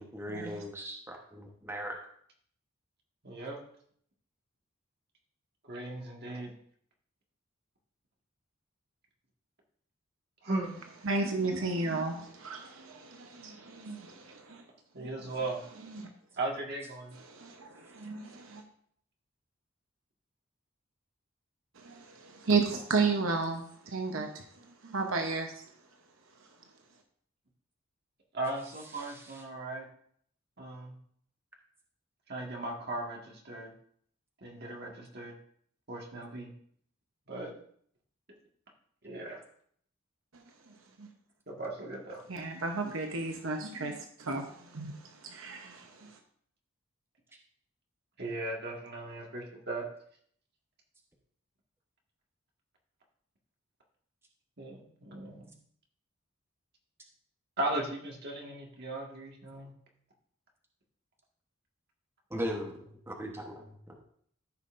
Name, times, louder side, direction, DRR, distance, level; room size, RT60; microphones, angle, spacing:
voice 1, 0.0-2.0 28.9-29.4 62.3-62.7 63.1-64.0, equal, 10° right, 0 dB, 1.1 m, -39 dB
voice 2, 3.2-3.6 5.6-6.5 10.4-10.7 14.9-15.6 16.4-17.2 28.3-29.9 30.6-31.0 32.3-33.7 34.4-35.3 35.9-36.5 37.3-37.5 39.0-39.4 41.5-42.2 48.2-49.9 54.6-55.5 57.6-59.7, right 2 dB, 55° right, -1 dB, 1.8 m, -37 dB
voice 3, 11.0-14.6 15.2-15.3 15.9-16.1 17.3-18.6 21.8-24.4 24.8-25.5 40.3-41.1 42.3-46.2, right 4 dB, 75° right, 4 dB, 0.9 m, -33 dB
14.0 x 5.4 x 2.6 m, 0.62 s
head